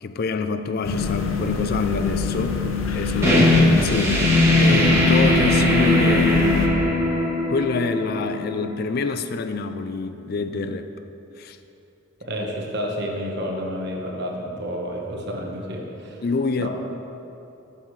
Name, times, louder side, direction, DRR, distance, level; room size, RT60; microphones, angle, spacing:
voice 1, 0.0-2.6 2.9-6.7 7.5-10.9 11.4-11.6 16.2-16.7, left 4 dB, 50° left, 9 dB, 0.4 m, -27 dB
sound 1, 0.8-6.7, left 5 dB, 85° left, 0.8 m, -26 dB
sound 2, 3.2-8.7, left 1 dB, 15° right, 1.2 m, -19 dB
voice 2, 12.2-16.2 16.6-16.7, equal, 55° right, 0 dB, 1.2 m, -30 dB
13.0 x 7.2 x 3.2 m, 2.9 s
head